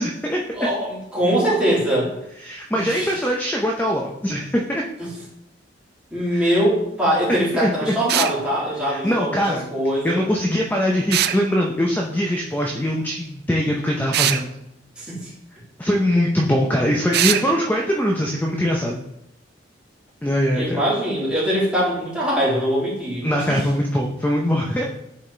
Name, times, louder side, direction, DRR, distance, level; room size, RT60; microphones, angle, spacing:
voice 1, 0.0-0.4 2.4-4.8 6.3-6.6 7.3-8.0 8.9-9.6 10.0-14.5 15.8-19.0 20.2-20.8 23.2-24.8, equal, 10° left, -1 dB, 0.5 m, -22 dB
voice 2, 0.5-2.1 2.7-3.2 5.0-5.1 6.1-10.3 15.0-15.3 20.5-23.6 24.8-24.9, equal, 5° right, -8 dB, 2.5 m, -22 dB
sound 1, 8.1-8.4 11.1-11.4 14.1-14.4 17.1-17.4, right 11 dB, 55° right, 0.3 m, -20 dB
8.7 x 4.2 x 3.2 m, 0.84 s
head